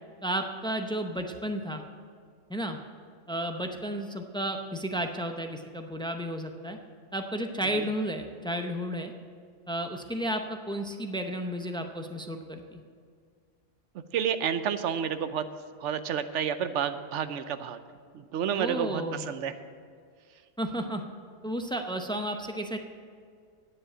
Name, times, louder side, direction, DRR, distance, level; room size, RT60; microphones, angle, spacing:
voice 1, 0.2-1.8 2.5-2.8 3.3-6.8 7.1-9.1 9.7-12.8 18.6-19.3 20.6-21.0 21.4-22.8, right 1 dB, 5° left, 5 dB, 0.3 m, -32 dB
voice 2, 14.1-15.5 15.8-17.8 18.1-19.5, right 8 dB, 70° right, 11 dB, 0.9 m, -30 dB
10.0 x 7.5 x 8.7 m, 2.1 s
omnidirectional pair, 1.3 m